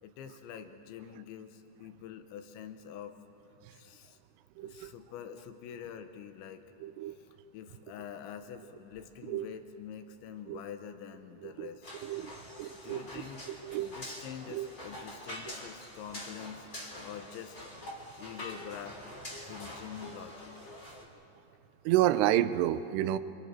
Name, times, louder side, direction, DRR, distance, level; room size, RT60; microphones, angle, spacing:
voice 1, 0.0-3.2 3.7-4.2 4.6-6.6 7.1-7.3 7.5-11.9 12.8-13.4 13.8-16.7 17.0-17.6 18.1-19.0 19.5-20.6, left 8 dB, 90° left, 7 dB, 3.4 m, -46 dB
voice 2, 4.6-4.9 6.8-7.1 9.3-9.5 10.5-10.6 11.4-11.7 12.0-12.3 12.6-13.0 13.6-13.9 14.5-14.7 21.9-23.2, right 13 dB, 80° right, 13 dB, 2.6 m, -29 dB
sound 1, 11.8-21.0, left 1 dB, 15° left, 3.0 m, -45 dB
29.0 x 26.0 x 4.5 m, 2.7 s
omnidirectional pair, 5.1 m